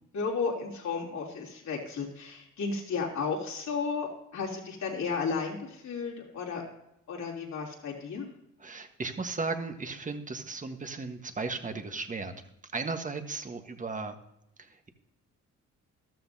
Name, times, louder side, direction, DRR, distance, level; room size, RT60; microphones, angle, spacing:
voice 1, 0.1-6.7 7.1-8.3, left 5 dB, 65° left, -1 dB, 3.3 m, -33 dB
voice 2, 8.6-12.3 12.7-14.1 14.6-14.9, right 4 dB, 25° right, 6 dB, 1.4 m, -35 dB
13.5 x 13.0 x 2.8 m, 0.81 s
cardioid pair, 90°, 30 cm